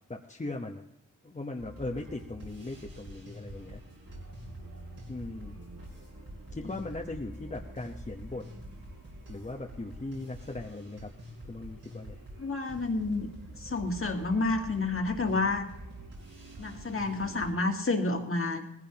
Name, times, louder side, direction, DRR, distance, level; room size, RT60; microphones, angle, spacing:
voice 1, 0.1-0.8 1.2-3.8 5.1-5.6 6.5-8.4 9.3-11.1 11.5-12.2, left 2 dB, 20° left, 1 dB, 0.9 m, -39 dB
sound 1, 1.6-17.5, right 1 dB, 75° right, 7.1 m, -46 dB
voice 2, 12.4-13.3 13.6-15.7 16.6-18.6, left 3 dB, 40° left, 3 dB, 1.7 m, -29 dB
19.5 x 15.5 x 2.9 m, 0.73 s
wide cardioid pair, 80°, 34 cm